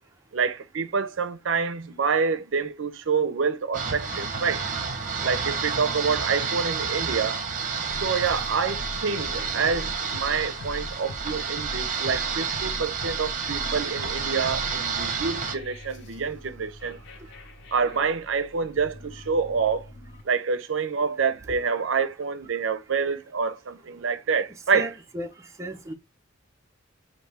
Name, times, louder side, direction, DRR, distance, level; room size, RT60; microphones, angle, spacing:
voice 1, 0.3-4.7 5.2-7.5 8.0-17.0 17.7-19.9 20.3-24.9, right 5 dB, 65° right, 0.5 m, -27 dB
sound 1, 3.7-15.6, right 5 dB, 40° right, 0.8 m, -30 dB
sound 2, 7.9-20.2, left 1 dB, 60° left, 0.7 m, -41 dB
voice 2, 24.7-25.9, right 1 dB, 15° right, 0.5 m, -35 dB
4.2 x 2.7 x 3.3 m
head